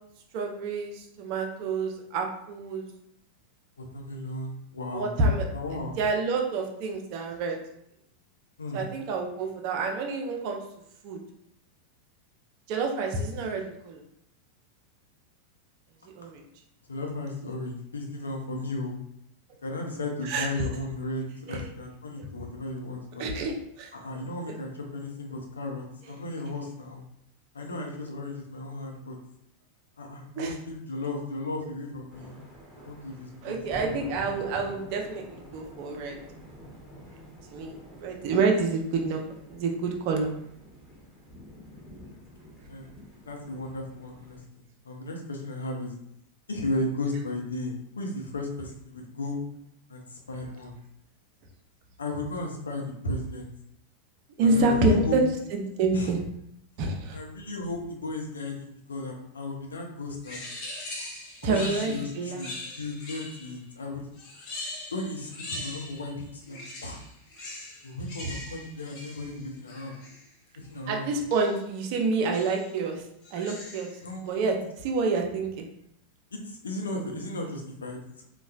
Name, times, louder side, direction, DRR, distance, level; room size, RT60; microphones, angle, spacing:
voice 1, 0.3-2.9 4.9-5.5 6.0-7.6 8.7-10.6 11.0-11.2 12.7-14.0 16.1-16.4 20.2-20.5 21.5-21.7 23.2-23.9 30.4-30.6 33.4-36.2 37.5-40.3 54.4-55.2 55.5-56.3 56.8-57.2 61.4-62.5 70.9-73.0 73.3-73.9 74.2-75.6, right 3 dB, 45° right, 2 dB, 0.5 m, -28 dB
voice 2, 3.9-5.1 5.5-6.0 8.6-8.8 16.9-19.0 19.6-23.2 23.9-27.0 27.5-29.2 30.0-32.4 32.8-33.6 42.6-42.9 43.3-45.9 46.5-49.4 49.9-50.7 52.0-53.5 54.4-55.2 55.9-56.1 57.1-60.4 61.4-64.1 64.9-67.0 67.8-69.9 70.7-71.1 74.0-74.5 76.3-78.2, left 2 dB, 70° left, 0 dB, 0.6 m, -35 dB
sound 1, 32.1-44.5, equal, ahead, 1.1 m, -47 dB
sound 2, 60.2-63.6 64.1-66.1 66.4-70.3 71.3-71.7 72.3-72.8 73.2-74.0, left 2 dB, 40° left, 0.9 m, -41 dB
4.0 x 2.2 x 2.3 m, 0.75 s
figure-of-eight pair, 90°, 0 cm